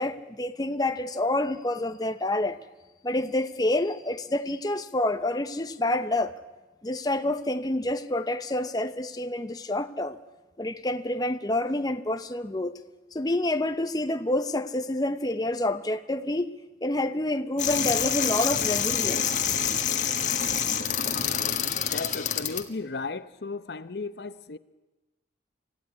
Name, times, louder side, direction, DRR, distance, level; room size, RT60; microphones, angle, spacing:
voice 1, 0.0-2.6 3.0-6.4 6.8-10.2 10.6-12.8 13.1-16.5 16.8-19.5, left 1 dB, 20° left, 9 dB, 0.8 m, -28 dB
sound 1, 17.6-22.6, left 8 dB, 45° left, 1.6 m, -27 dB
voice 2, 21.9-24.6, left 3 dB, 65° left, 13 dB, 0.8 m, -35 dB
25.0 x 15.0 x 9.7 m, 1.1 s
head